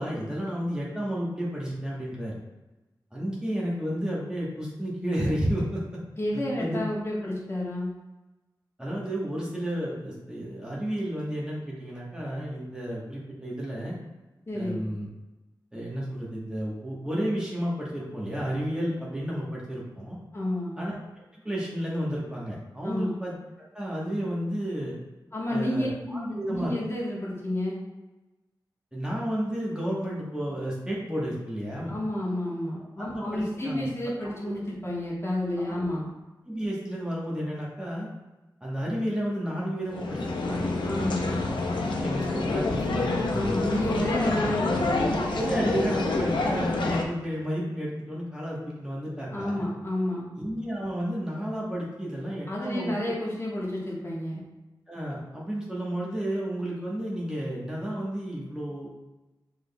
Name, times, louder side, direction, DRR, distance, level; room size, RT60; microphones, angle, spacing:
voice 1, 0.0-2.4 3.1-6.0 6.3-6.8 8.8-14.0 14.5-15.1 15.7-20.2 20.8-21.0 21.4-23.3 23.7-24.9 25.5-26.8 28.9-32.0 33.0-33.9 34.2-34.5 35.6-35.9 36.4-38.1 38.6-40.7 41.2-43.5 45.3-49.7 50.4-53.0 54.9-58.9, equal, 10° right, -6 dB, 1.2 m, -32 dB
voice 2, 6.2-7.9 14.5-14.8 20.3-20.7 22.8-23.1 25.3-27.8 31.9-36.1 40.8-41.2 43.3-45.2 49.3-50.2 52.5-54.4, left 1 dB, 35° left, -6 dB, 1.4 m, -30 dB
sound 1, 39.9-47.0, left 3 dB, 90° left, 0.6 m, -27 dB
6.1 x 3.6 x 2.3 m, 1.1 s
wide cardioid pair, 85°, 8 cm